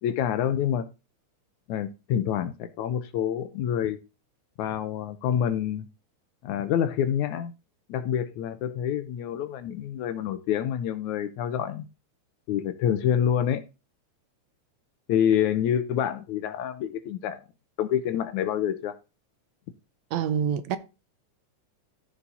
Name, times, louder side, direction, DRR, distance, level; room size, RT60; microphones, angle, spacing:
voice 1, 0.0-0.9 1.7-4.0 4.6-5.9 6.4-7.5 7.9-11.9 12.5-13.6 15.1-17.4 17.8-18.9, left 9 dB, 85° left, 2.3 m, -27 dB
voice 2, 20.1-20.8, right 8 dB, 75° right, 2.0 m, -26 dB
14.5 x 4.9 x 4.1 m
omnidirectional pair, 3.4 m